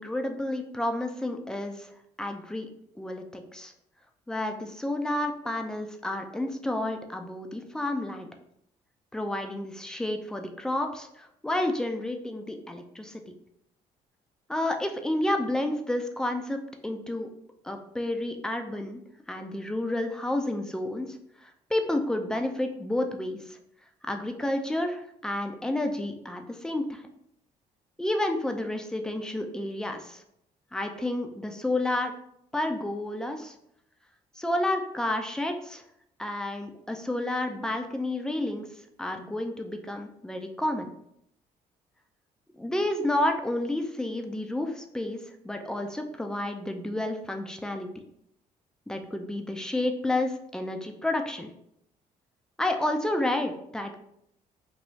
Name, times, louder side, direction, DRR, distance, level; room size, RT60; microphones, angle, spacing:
voice 1, 0.0-1.9 2.2-2.7 3.0-3.7 4.3-8.3 9.1-13.2 14.5-17.3 17.6-19.0 19.3-23.6 24.0-27.0 28.0-30.2 30.7-32.1 32.5-33.5 34.4-35.8 36.2-38.7 39.0-40.9 42.6-45.2 45.4-47.9 48.9-51.5 52.6-54.0, left 1 dB, 5° left, 4 dB, 0.5 m, -30 dB
3.1 x 3.0 x 3.9 m, 0.74 s
figure-of-eight pair, 45°, 20 cm